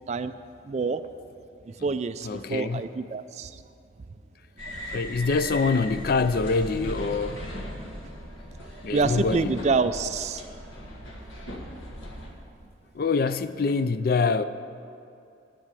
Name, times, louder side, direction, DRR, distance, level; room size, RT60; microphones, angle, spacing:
voice 1, 0.6-1.0 1.8-3.6 4.6-4.8 8.9-10.4, right 4 dB, 35° right, 0.3 m, -27 dB
voice 2, 2.2-2.8 4.9-7.4 8.8-9.6 12.9-14.4, left 4 dB, 50° left, 0.4 m, -25 dB
sound 1, 4.6-12.3, equal, 90° left, 1.6 m, -38 dB
10.5 x 5.9 x 8.3 m
head